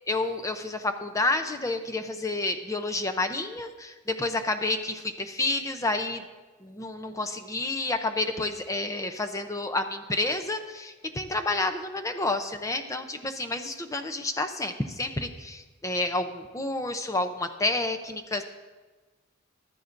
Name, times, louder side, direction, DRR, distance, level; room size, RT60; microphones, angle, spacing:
voice 1, 0.1-6.2 6.6-18.4, left 2 dB, 15° left, 6 dB, 0.6 m, -29 dB
14.0 x 12.0 x 2.6 m, 1.3 s
head